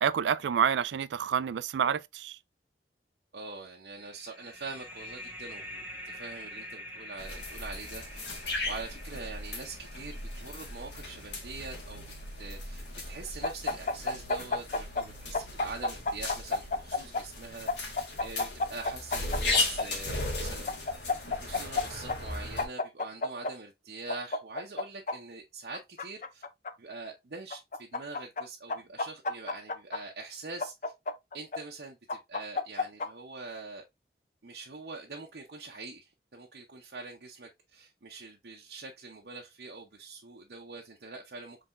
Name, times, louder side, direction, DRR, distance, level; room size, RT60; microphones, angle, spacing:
voice 1, 0.0-2.4, right 8 dB, 85° right, 0.3 m, -28 dB
voice 2, 3.3-8.2 8.7-12.0 12.4-21.0 21.3-26.4 26.8-30.9 31.3-33.9 34.4-41.6, right 3 dB, 65° right, 0.7 m, -44 dB
sound 1, 3.9-13.2, equal, 10° right, 0.9 m, -47 dB
sound 2, 7.2-22.6, left 2 dB, 75° left, 1.5 m, -37 dB
sound 3, 13.4-15.1 15.3-17.2 17.7-19.9 20.7-21.8 22.1-22.2 22.6-23.5 24.1-25.2 25.7-26.7 27.5-28.4 28.7-30.0 30.6-31.6 32.1-33.1, left 3 dB, 45° left, 0.4 m, -30 dB
5.6 x 3.4 x 2.5 m
head